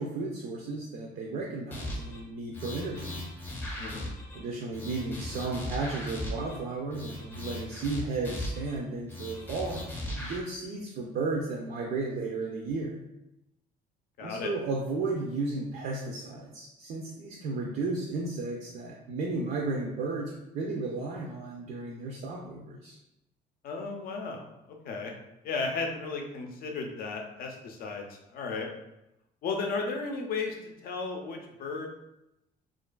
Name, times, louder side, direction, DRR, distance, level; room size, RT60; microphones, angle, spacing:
voice 1, 0.0-3.2 4.3-9.8 10.2-13.0 14.2-23.0, right 3 dB, 60° right, -1 dB, 0.4 m, -34 dB
sound 1, 1.7-2.2 2.5-4.4 4.7-6.6 6.9-8.8 9.1-10.4, left 1 dB, 10° left, 0.6 m, -38 dB
voice 2, 3.8-4.1 14.2-14.5 23.6-25.1 25.4-28.7 29.4-31.9, left 4 dB, 60° left, 2 dB, 0.5 m, -34 dB
2.5 x 2.3 x 2.2 m, 0.88 s
cardioid pair, 110°, 17 cm